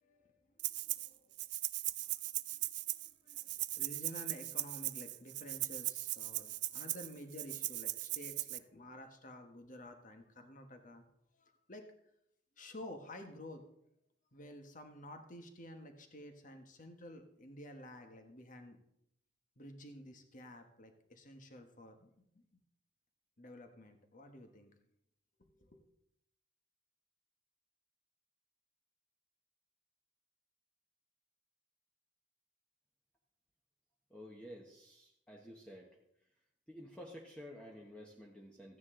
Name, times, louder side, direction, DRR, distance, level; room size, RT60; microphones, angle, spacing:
voice 1, 0.0-1.3 1.9-11.1 11.3-11.9 12.6-13.7 14.3-18.8 19.6-22.4 23.4-24.7 25.4-25.8, left 1 dB, 45° left, 6 dB, 1.3 m, -52 dB
Rattle (instrument), 0.6-1.1 1.4-8.6, right 18 dB, 60° right, 0.4 m, -39 dB
voice 2, 34.1-36.0 36.7-38.8, equal, 5° left, -1 dB, 1.0 m, -51 dB
14.5 x 9.5 x 3.8 m, 0.76 s
head